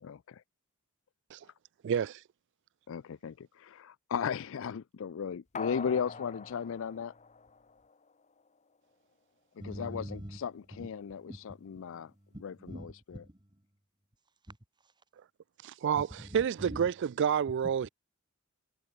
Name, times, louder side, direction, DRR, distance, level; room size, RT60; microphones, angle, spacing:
voice 1, 0.0-0.4 2.9-7.1 9.6-12.1 12.4-12.5, left 7 dB, 65° left, 0.4 m, -36 dB
voice 2, 1.8-2.2 15.6-16.1 16.3-17.9, right 8 dB, 55° right, 0.3 m, -29 dB
sound 1, 5.5-8.1 8.5-8.6, left 5 dB, 35° left, 1.1 m, -43 dB
voice 3, 9.6-10.4 10.7-13.6 14.4-14.6 14.8-14.9 16.0-16.9 17.6-17.9, equal, 20° right, 2.4 m, -46 dB
head